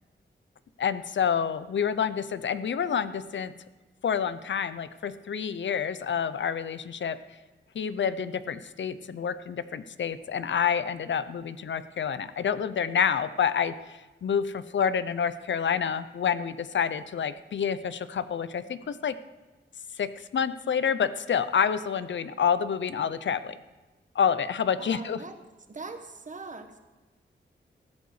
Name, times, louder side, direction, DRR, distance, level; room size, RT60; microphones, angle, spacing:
voice 1, 0.8-3.5 4.0-7.2 7.7-19.2 20.0-23.5 24.1-25.2, left 7 dB, 70° left, 13 dB, 0.6 m, -28 dB
voice 2, 24.8-25.3 25.7-26.7, right 3 dB, 40° right, 7 dB, 1.2 m, -41 dB
15.0 x 8.5 x 6.4 m, 1.2 s
wide cardioid pair, 145°, 20 cm